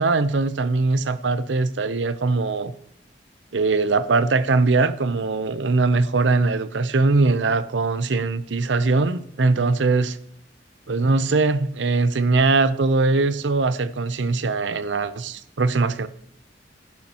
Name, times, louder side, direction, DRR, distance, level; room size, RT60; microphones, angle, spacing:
voice 1, 0.0-2.7 3.5-10.2 10.9-16.1, right 3 dB, 90° right, 0.6 m, -21 dB
11.5 x 10.5 x 3.0 m
head